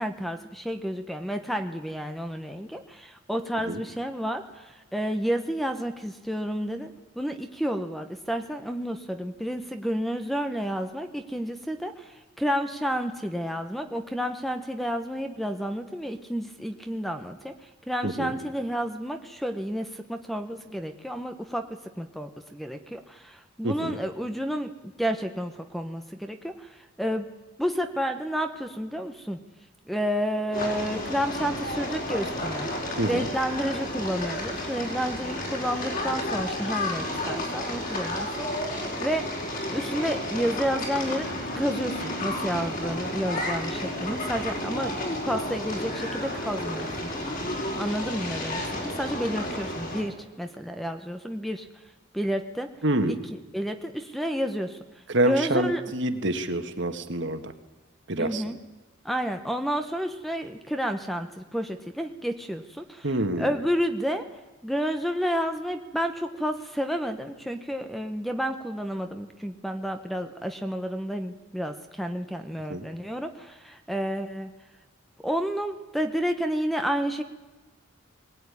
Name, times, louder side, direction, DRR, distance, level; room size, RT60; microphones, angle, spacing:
voice 1, 0.0-24.7 25.0-27.3 27.6-29.4 29.9-32.7 33.1-39.3 39.7-45.0 45.2-47.1 47.8-51.7 52.1-52.7 53.1-53.2 53.5-54.8 55.2-55.8 58.2-58.6 59.0-63.1 63.4-64.3 64.6-74.5 75.2-77.2, equal, ahead, 7 dB, 1.0 m, -30 dB
voice 2, 18.0-18.4 23.6-24.0 33.0-33.3 52.8-53.1 55.1-57.5 58.1-58.4 63.0-63.5 72.7-72.9, right 1 dB, 55° right, 7 dB, 1.7 m, -27 dB
sound 1, 30.5-50.0, left 1 dB, 40° left, 5.1 m, -32 dB
21.0 x 18.5 x 9.8 m, 1.2 s
head